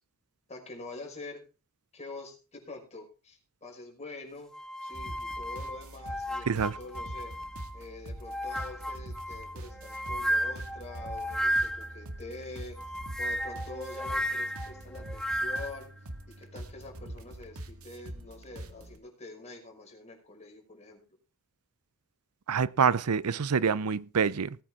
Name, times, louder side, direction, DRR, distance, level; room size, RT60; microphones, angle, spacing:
voice 1, 0.5-1.4 1.9-4.5 4.8-7.3 7.7-15.9 16.4-21.0, left 2 dB, 30° left, 5.7 m, -45 dB
sound 1, 4.5-7.8 8.2-12.0 12.8-15.8, equal, 5° left, 1.1 m, -34 dB
sound 2, 4.9-19.0, right 1 dB, 70° right, 2.0 m, -44 dB
voice 2, 22.5-24.6, right 6 dB, 85° right, 0.6 m, -26 dB
19.0 x 9.0 x 3.7 m
head